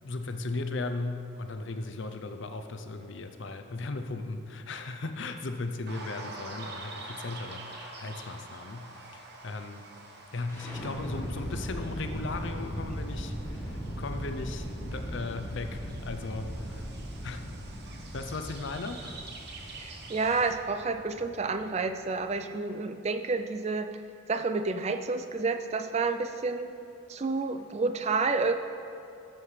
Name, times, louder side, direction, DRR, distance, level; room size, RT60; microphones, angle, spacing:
voice 1, 0.0-9.8 10.3-16.9 17.2-17.5 18.1-19.2, left 3 dB, 60° left, 7 dB, 0.5 m, -37 dB
sound 1, 5.9-20.5, right 3 dB, 50° right, 1.0 m, -47 dB
sound 2, 10.5-22.4, equal, 10° left, 1.2 m, -38 dB
voice 2, 19.8-23.9 24.3-26.7 27.1-28.5, right 4 dB, 30° right, 8 dB, 0.4 m, -29 dB
12.5 x 7.5 x 3.3 m, 2.8 s
head